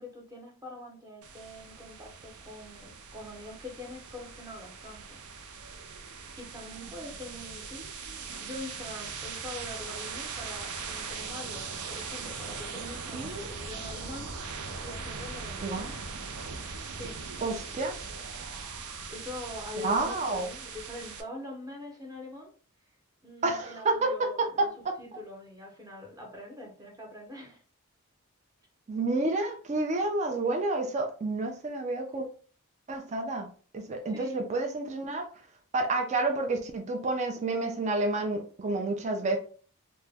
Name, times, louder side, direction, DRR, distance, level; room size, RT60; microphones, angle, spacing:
voice 1, 0.0-5.2 5.6-5.9 6.4-7.9 8.1-14.3 14.8-16.0 16.9-17.2 19.1-22.5 23.2-24.7 25.0-27.6 34.1-34.4, left 1 dB, 15° right, 0.8 m, -44 dB
sound 1, 1.2-21.2, right 5 dB, 85° right, 0.5 m, -40 dB
voice 2, 15.6-15.9 17.4-18.0 19.8-20.5 23.4-25.0 28.9-32.3 32.9-35.3 35.7-39.4, right 2 dB, 30° right, 0.4 m, -29 dB
2.9 x 2.1 x 3.4 m
head